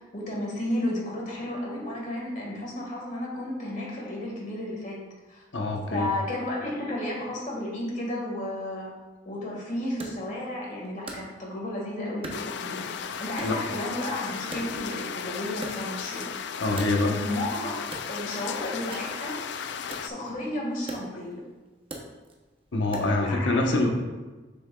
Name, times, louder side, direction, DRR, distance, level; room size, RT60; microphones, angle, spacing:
voice 1, 0.0-5.0 5.3-5.4 5.9-8.9 9.3-12.8 13.2-16.3 16.6-16.7 17.0-19.4 20.0-21.4 23.3-23.9, left 1 dB, 40° left, -3 dB, 1.8 m, -33 dB
voice 2, 5.5-6.1 13.4-13.6 16.6-17.1 22.7-23.9, left 2 dB, 85° left, 1 dB, 1.1 m, -25 dB
Wood, 10.0-11.8 12.2-13.0 13.4-15.2 15.5-17.4 17.8-23.4, right 2 dB, 30° right, 0.8 m, -43 dB
sound 1, 12.3-20.1, left 7 dB, 65° left, 0.3 m, -35 dB
7.0 x 6.9 x 2.3 m, 1.2 s
head